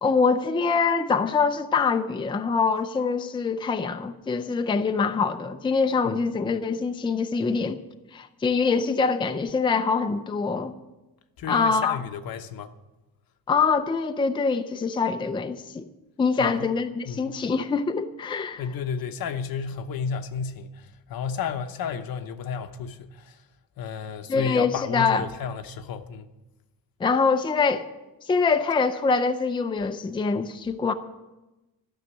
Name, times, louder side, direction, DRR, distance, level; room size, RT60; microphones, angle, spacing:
voice 1, 0.0-7.8 8.1-10.7 11.5-12.0 13.5-15.8 16.2-18.6 24.3-25.2 27.0-27.9 28.2-30.9, left 5 dB, 15° left, 0.4 m, -24 dB
voice 2, 11.4-12.7 16.4-16.7 17.1-17.4 18.6-23.4 23.8-26.3, left 6 dB, 75° left, 1.0 m, -32 dB
13.0 x 6.4 x 9.7 m
wide cardioid pair, 160°, 35 cm